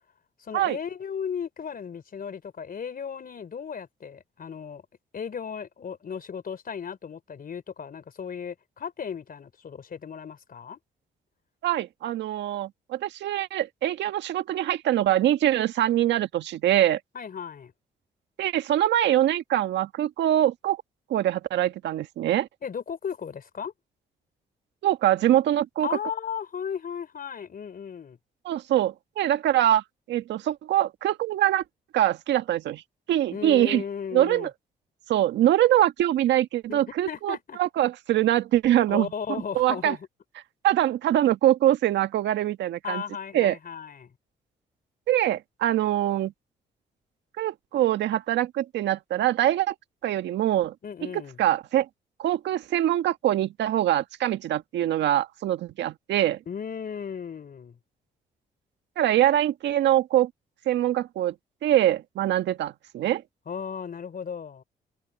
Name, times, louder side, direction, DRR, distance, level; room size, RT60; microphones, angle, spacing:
voice 1, 0.4-4.8 5.1-10.8 17.1-17.7 22.6-23.7 25.8-28.2 33.3-34.5 36.7-37.6 38.9-40.0 42.8-44.1 50.8-51.4 56.5-57.8 63.5-64.6, left 7 dB, 55° left, 3.9 m, -35 dB
voice 2, 11.6-17.0 18.4-20.8 21.1-22.5 24.8-25.9 28.4-29.8 30.1-31.6 31.9-32.8 33.1-33.8 34.1-34.5 35.1-39.1 39.5-40.0 40.6-43.0 43.3-43.6 45.1-46.3 47.4-49.7 50.0-50.7 51.0-51.9 52.2-56.4 59.0-60.3 60.6-61.3 61.6-63.2, right 12 dB, 80° right, 1.7 m, -23 dB
supercardioid pair, 55°, 18 cm